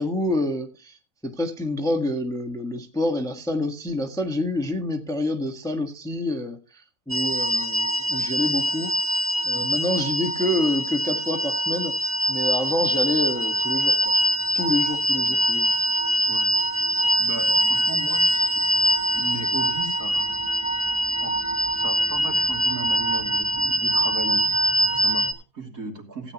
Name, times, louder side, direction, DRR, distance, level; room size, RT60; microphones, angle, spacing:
voice 1, 0.0-9.2 9.4-11.9 12.3-14.1 14.5-15.7 17.6-17.7, left 1 dB, ahead, 3 dB, 1.3 m, -27 dB
sound 1, 7.1-25.3, right 1 dB, 20° right, 1.0 m, -23 dB
voice 2, 17.2-18.7 19.1-20.4 21.2-21.4 21.7-24.4 24.8-26.3, right 3 dB, 55° right, 1 dB, 3.3 m, -36 dB
16.5 x 9.7 x 2.9 m, 0.32 s
omnidirectional pair, 1.8 m